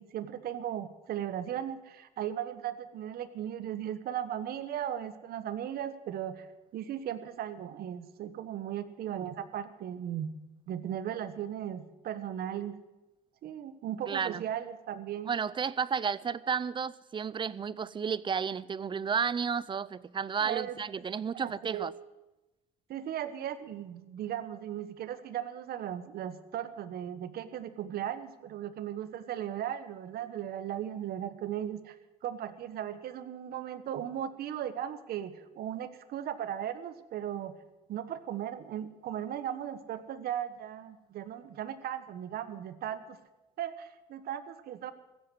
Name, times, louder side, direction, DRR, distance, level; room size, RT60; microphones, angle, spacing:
voice 1, 0.0-6.5 6.7-10.3 10.7-12.7 13.4-15.3 20.4-20.8 21.3-21.9 22.9-31.9 32.2-37.5 37.9-43.2 43.6-44.9, right 10 dB, 65° right, 1.2 m, -37 dB
voice 2, 14.1-14.4 15.3-21.9, right 6 dB, 30° right, 0.5 m, -32 dB
16.0 x 8.2 x 9.7 m
cardioid pair, 110°, 17 cm